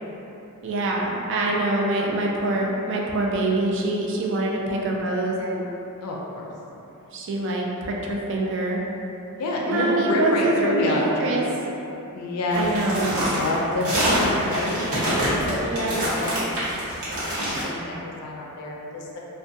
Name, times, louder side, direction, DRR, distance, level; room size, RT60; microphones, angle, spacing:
voice 1, 0.6-5.7 7.1-8.8 9.7-11.4 12.5-13.2 15.6-16.0, right 2 dB, 55° right, -1 dB, 0.4 m, -25 dB
voice 2, 6.0-6.5 9.3-11.1 12.1-12.7 13.3-19.2, left 2 dB, 80° left, -2 dB, 0.4 m, -28 dB
sound 1, 12.5-17.6, equal, 80° right, 1.0 m, -25 dB
2.5 x 2.1 x 2.6 m, 3.0 s
head